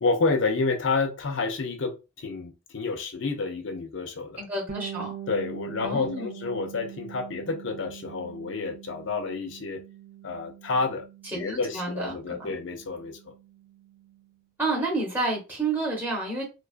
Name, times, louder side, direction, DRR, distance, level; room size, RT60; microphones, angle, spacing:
voice 1, 0.0-4.4 5.3-9.8 10.2-11.1 11.3-13.3, left 4 dB, 70° left, 0.5 m, -29 dB
voice 2, 4.4-5.1 5.8-6.3 11.3-12.5 14.6-16.4, right 2 dB, 10° right, 1.0 m, -30 dB
Bass guitar, 4.7-14.3, right 10 dB, 50° right, 0.4 m, -43 dB
2.3 x 2.2 x 2.4 m
head